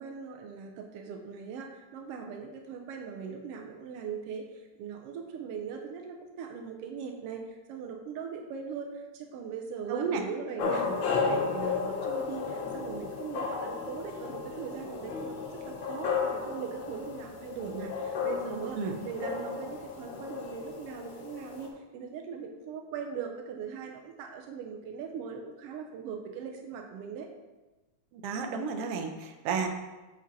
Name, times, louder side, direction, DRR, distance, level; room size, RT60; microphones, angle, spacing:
voice 1, 0.0-27.3, right 6 dB, 85° right, 2 dB, 1.3 m, -40 dB
voice 2, 9.9-10.2 10.6-10.7 18.8-19.0 28.1-29.7, right 5 dB, 70° right, 3 dB, 1.4 m, -32 dB
sound 1, 10.6-21.7, left 5 dB, 85° left, 1.0 m, -34 dB
7.6 x 5.6 x 4.0 m, 1.1 s
omnidirectional pair, 3.5 m